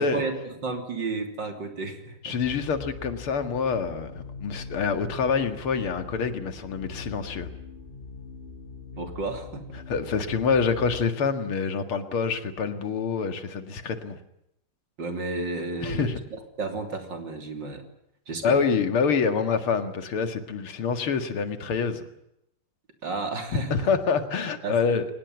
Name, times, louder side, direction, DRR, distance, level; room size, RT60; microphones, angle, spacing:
voice 1, 0.0-2.4 9.0-9.7 15.0-17.8 18.3-18.6 23.0-23.9 24.6-25.0, right 3 dB, 55° right, 5 dB, 3.8 m, -32 dB
voice 2, 2.2-7.5 9.9-14.2 15.8-16.2 18.4-22.0 23.7-25.1, left 5 dB, 80° left, 8 dB, 2.8 m, -26 dB
sound 1, 2.4-11.1, left 4 dB, 25° left, 2.3 m, -42 dB
23.5 x 19.5 x 9.3 m, 0.81 s
omnidirectional pair, 2.4 m